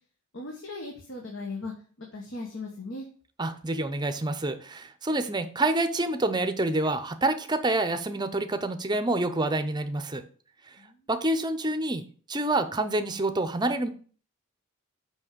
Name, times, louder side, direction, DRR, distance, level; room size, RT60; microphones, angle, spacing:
voice 1, 0.3-3.1 10.8-11.0, left 2 dB, 60° left, 1 dB, 1.4 m, -38 dB
voice 2, 3.4-10.2 11.1-12.0 12.3-13.9, right 2 dB, 20° right, 9 dB, 0.7 m, -27 dB
6.2 x 5.3 x 6.8 m, 0.43 s
head